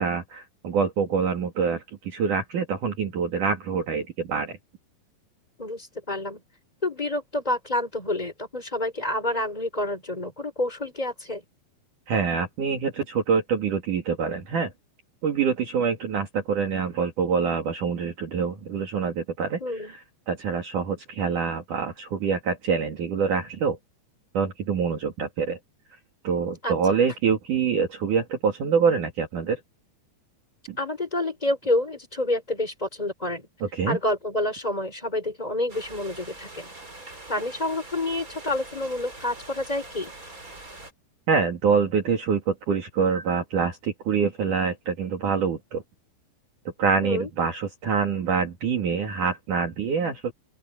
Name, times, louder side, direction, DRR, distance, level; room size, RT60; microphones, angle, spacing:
voice 1, 0.0-4.6 12.1-14.7 15.2-19.6 20.3-23.8 24.3-25.6 26.2-29.6 30.7-30.8 33.6-34.0 41.3-45.8 46.8-50.3, right 6 dB, 50° right, 3.2 m, -25 dB
voice 2, 5.6-6.4 6.8-11.4 19.6-19.9 26.6-26.7 30.8-33.5 33.9-36.7 37.3-40.1 47.0-47.3, left 1 dB, 10° left, 4.5 m, -28 dB
sound 1, 35.7-40.9, right 2 dB, 20° right, 4.9 m, -43 dB
open air
omnidirectional pair, 5.1 m